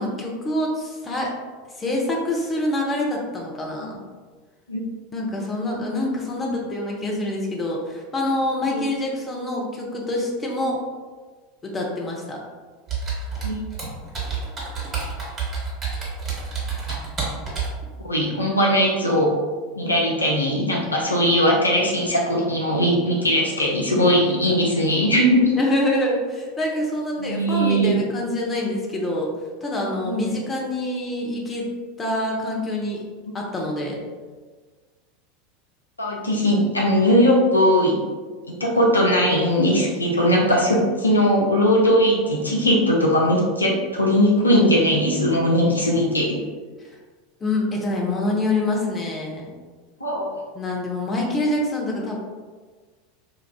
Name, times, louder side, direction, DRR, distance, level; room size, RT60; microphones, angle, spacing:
voice 1, 0.0-1.3 1.8-4.0 5.1-10.8 11.6-12.4 25.6-29.3 29.6-31.7 32.0-33.0 33.3-34.0 47.4-49.5 50.5-52.2, left 1 dB, 20° left, -1 dB, 0.7 m, -26 dB
Computer keyboard, 12.9-17.8, right 5 dB, 30° right, 1.4 m, -29 dB
voice 2, 18.0-19.3 19.8-25.6 27.2-28.0 30.0-30.3 36.0-38.0 38.6-46.4 50.0-50.4, equal, 85° left, -2 dB, 0.5 m, -19 dB
4.7 x 2.4 x 2.2 m, 1.4 s
figure-of-eight pair, 80°, 0 cm